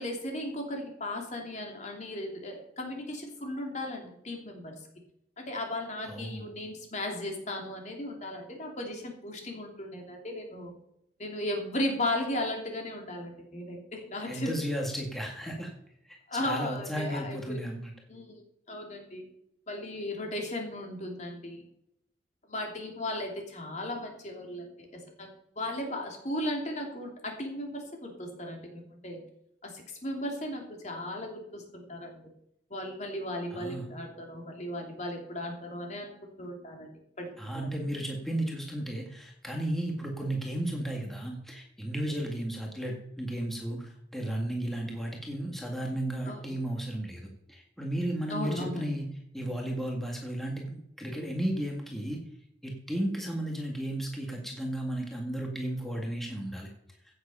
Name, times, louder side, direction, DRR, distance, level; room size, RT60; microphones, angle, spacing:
voice 1, 0.0-4.7 5.4-10.7 11.2-14.6 16.3-17.6 18.1-18.4 18.7-19.2 19.7-21.6 22.5-25.3 25.6-29.2 29.6-32.2 32.7-36.9 37.2-37.3 37.5-37.7 46.2-46.6 48.3-48.9, left 1 dB, 40° left, 2 dB, 3.0 m, -36 dB
voice 2, 6.0-6.5 14.2-15.7 16.0-17.9 33.5-33.9 37.4-49.1 49.3-52.2 52.6-56.7, right 1 dB, ahead, 0 dB, 2.0 m, -34 dB
16.0 x 7.9 x 5.6 m, 0.78 s
head